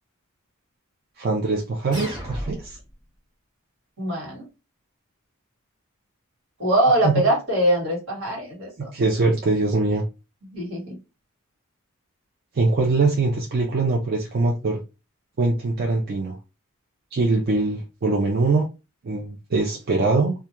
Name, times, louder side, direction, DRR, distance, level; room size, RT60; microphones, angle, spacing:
voice 1, 1.2-2.8 7.0-7.2 8.9-10.0 12.5-14.8 15.4-16.4 17.1-18.7 19.0-20.3, right 3 dB, 45° right, 1 dB, 0.4 m, -22 dB
sound 1, 1.9-2.9, equal, 25° right, 1.0 m, -33 dB
voice 2, 4.0-4.4 6.6-8.9 10.5-11.0, right 1 dB, 65° right, -2 dB, 1.4 m, -22 dB
2.2 x 2.2 x 2.9 m, 0.28 s
head